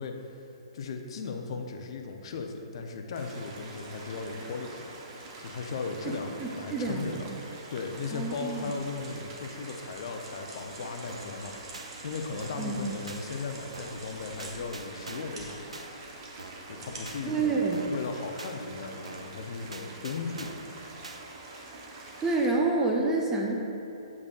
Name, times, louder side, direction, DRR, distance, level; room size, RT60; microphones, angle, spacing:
voice 1, 0.0-4.9 5.4-7.3 7.7-15.8 16.7-17.6 17.9-20.5, left 4 dB, 55° left, 4 dB, 0.6 m, -37 dB
sound 1, 3.1-22.5, right 2 dB, 40° right, 0.9 m, -46 dB
voice 2, 6.4-7.1 8.1-8.7 12.6-12.9 17.3-17.9 22.2-23.6, right 3 dB, 15° right, -1 dB, 0.5 m, -28 dB
sound 2, 7.8-17.8, right 2 dB, 60° right, 1.3 m, -50 dB
sound 3, 11.1-11.4 11.7-11.9 12.4-12.7 13.1-13.2 13.7-14.1 14.4-15.4 15.7-15.9 16.4-16.7 17.1-17.2 17.7-18.0 18.4-18.5 19.0-19.4 19.7-20.7 21.0-21.2, right 3 dB, 85° right, 0.5 m, -45 dB
8.1 x 5.1 x 2.4 m, 2.9 s
figure-of-eight pair, 130°, 3 cm